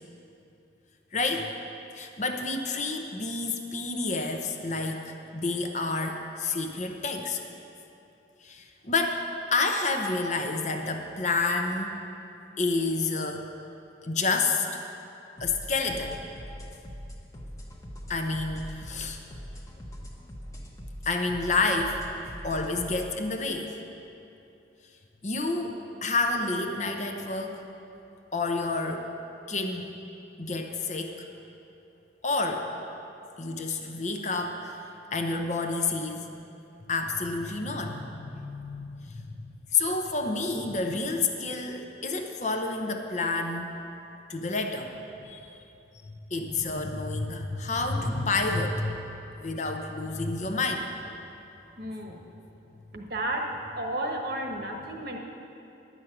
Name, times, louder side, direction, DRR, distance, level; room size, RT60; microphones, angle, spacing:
voice 1, 1.1-1.5 1.9-7.4 8.4-9.2 9.5-12.0 12.6-13.5 14.0-14.8 15.4-16.2 18.1-19.2 21.1-22.0 22.4-23.7 25.2-27.6 28.3-29.1 29.5-29.9 30.4-31.3 32.2-32.7 33.4-34.8 35.1-36.3 36.9-43.7 44.3-44.9 45.2-45.6 46.1-49.0 49.4-50.9, left 3 dB, 40° left, 4 dB, 0.8 m, -29 dB
sound 1, 15.4-23.1, equal, 15° left, 1.1 m, -42 dB
voice 2, 51.8-52.2 52.9-53.5 53.7-55.2, right 1 dB, 55° right, 2 dB, 1.2 m, -32 dB
10.5 x 6.4 x 8.7 m, 2.8 s
head